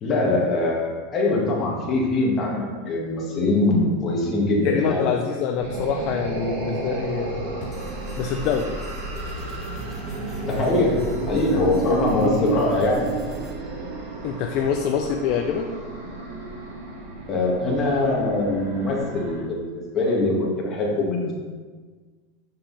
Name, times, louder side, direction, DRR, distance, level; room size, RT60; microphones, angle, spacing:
voice 1, 0.0-5.1 10.4-10.9 11.3-13.0 17.3-21.3, left 2 dB, 30° left, -3 dB, 2.1 m, -22 dB
voice 2, 4.6-7.5 8.2-8.7 14.2-15.7, left 7 dB, 50° left, 3 dB, 0.6 m, -25 dB
sound 1, 5.6-19.4, right 3 dB, 85° right, 1.9 m, -32 dB
sound 2, 7.7-13.5, right 1 dB, 15° right, 1.3 m, -37 dB
7.4 x 5.4 x 4.3 m, 1.5 s
supercardioid pair, 140°, 0 cm